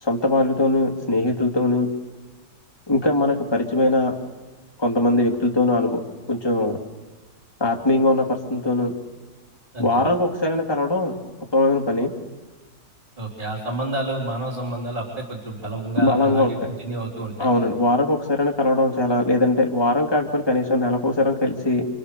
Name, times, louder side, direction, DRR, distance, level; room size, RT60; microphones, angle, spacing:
voice 1, 0.0-1.9 2.9-4.1 4.8-6.0 6.3-6.8 7.6-8.2 8.5-8.9 9.8-11.1 11.5-12.1 16.0-16.6 17.4-21.9, left 2 dB, 15° left, 1 dB, 2.9 m, -20 dB
voice 2, 13.2-17.5, right 1 dB, 30° right, -5 dB, 4.3 m, -29 dB
28.5 x 27.5 x 6.9 m, 1.3 s
omnidirectional pair, 1.8 m